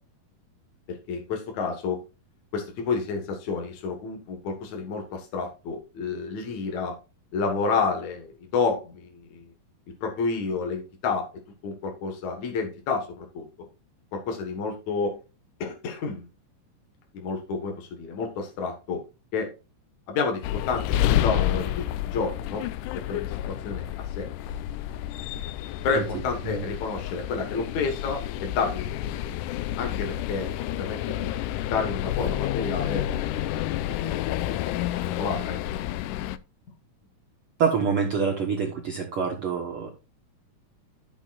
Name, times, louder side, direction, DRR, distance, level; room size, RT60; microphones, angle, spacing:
voice 1, 1.1-2.0 2.5-6.9 7.3-9.4 10.0-11.3 11.6-13.4 14.1-15.2 15.6-16.3 17.1-19.0 19.3-19.5 20.1-22.6 23.1-23.8 24.2-24.3 25.8-29.2 29.8-30.5 30.8-31.3 31.7-34.2 34.8-35.6, left 4 dB, 60° left, 2 dB, 2.6 m, -30 dB
sound 1, 20.4-36.4, left 12 dB, 80° left, 1.9 m, -29 dB
voice 2, 37.6-39.9, right 6 dB, 65° right, 3 dB, 1.3 m, -26 dB
13.0 x 7.1 x 2.4 m, 0.30 s
omnidirectional pair, 4.0 m